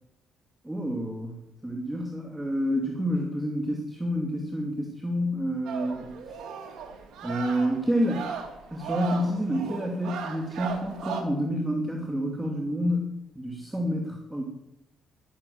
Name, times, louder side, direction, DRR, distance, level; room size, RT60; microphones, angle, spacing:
voice 1, 0.6-1.3 1.6-6.1 7.2-8.3 8.7-14.4, equal, 10° right, 1 dB, 2.5 m, -28 dB
sound 1, 5.7-11.2, right 6 dB, 80° right, 2.6 m, -36 dB
12.0 x 12.0 x 7.0 m, 0.81 s
cardioid pair, 90°, 0 cm